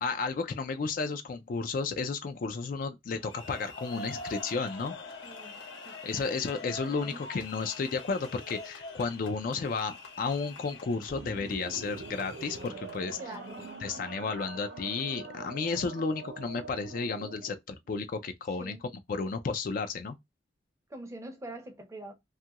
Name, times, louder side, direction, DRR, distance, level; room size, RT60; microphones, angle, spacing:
voice 1, 0.0-5.0 6.0-13.2 13.8-18.8 19.1-20.2, left 4 dB, 45° left, 0.3 m, -33 dB
sound 1, 3.1-14.2, left 3 dB, 85° left, 1.0 m, -45 dB
voice 2, 5.2-5.5 5.8-6.0 6.7-7.2 13.2-13.7 18.6-18.8 20.9-22.1, right 1 dB, 15° right, 0.5 m, -44 dB
sound 2, 11.1-17.6, right 4 dB, 65° right, 0.5 m, -44 dB
2.6 x 2.3 x 2.8 m
head